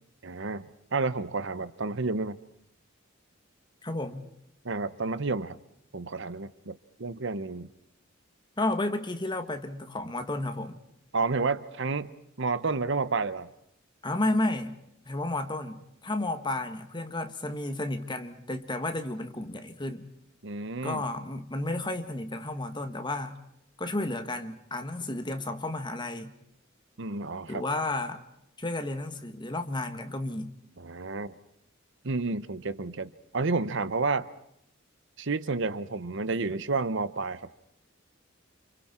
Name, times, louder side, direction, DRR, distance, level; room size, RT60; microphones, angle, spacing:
voice 1, 0.2-2.4 4.6-5.6 5.9-7.7 11.1-12.1 12.4-13.5 20.4-21.0 27.0-27.6 30.8-31.4 32.0-34.3 35.2-37.5, right 3 dB, 65° right, 14 dB, 0.9 m, -30 dB
voice 2, 3.8-4.3 8.6-10.8 14.0-14.8 15.0-20.1 20.8-23.4 23.8-26.3 27.5-28.2 28.6-30.5, left 2 dB, 25° left, 7 dB, 1.7 m, -32 dB
29.5 x 28.0 x 4.4 m, 0.78 s
head